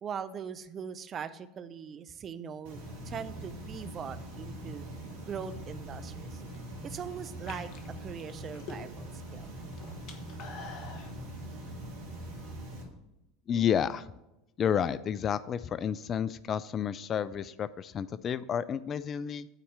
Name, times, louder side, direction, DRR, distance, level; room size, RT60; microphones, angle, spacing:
voice 1, 0.0-4.9 5.2-6.4 6.8-7.7 8.0-9.5, right 7 dB, 35° right, 12 dB, 0.6 m, -41 dB
sound 1, 2.6-12.8, right 1 dB, 65° right, 2.3 m, -42 dB
sound 2, 6.3-6.7 7.3-9.2 9.5-11.1, left 4 dB, 50° left, 1.3 m, -46 dB
voice 2, 13.5-14.1 14.6-19.5, left 8 dB, 35° left, 16 dB, 0.3 m, -30 dB
9.0 x 4.2 x 6.4 m, 0.92 s
figure-of-eight pair, 80°, 0 cm